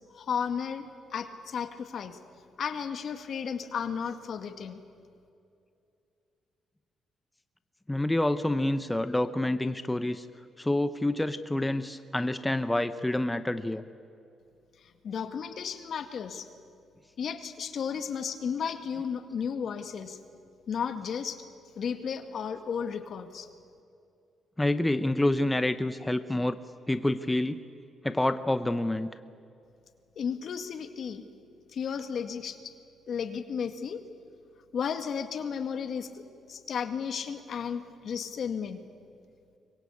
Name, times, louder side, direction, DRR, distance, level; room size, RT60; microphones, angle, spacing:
voice 1, 0.1-2.2 2.6-4.8 14.8-16.5 17.2-20.2 20.7-21.4 21.8-23.5 30.2-31.2 31.7-32.7 33.1-34.0 34.7-38.8, left 7 dB, 60° left, 8 dB, 2.0 m, -34 dB
voice 2, 7.9-10.3 10.6-13.8 24.6-26.6 26.9-27.6 28.0-29.1, left 1 dB, 10° left, 10 dB, 0.9 m, -27 dB
25.0 x 22.5 x 8.6 m, 2.5 s
cardioid pair, 90°, 0 cm